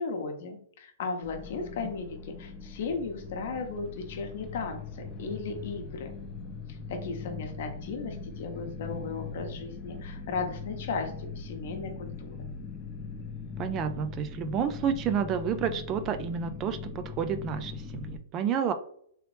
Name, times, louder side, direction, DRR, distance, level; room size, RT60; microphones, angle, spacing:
voice 1, 0.0-6.2 6.7-12.5, left 4 dB, 60° left, 4 dB, 0.8 m, -36 dB
sound 1, 1.2-18.2, left 5 dB, 30° left, 0.5 m, -40 dB
voice 2, 13.6-18.7, right 7 dB, 30° right, 10 dB, 0.3 m, -30 dB
3.1 x 2.9 x 3.1 m, 0.64 s
hypercardioid pair, 140°, 0 cm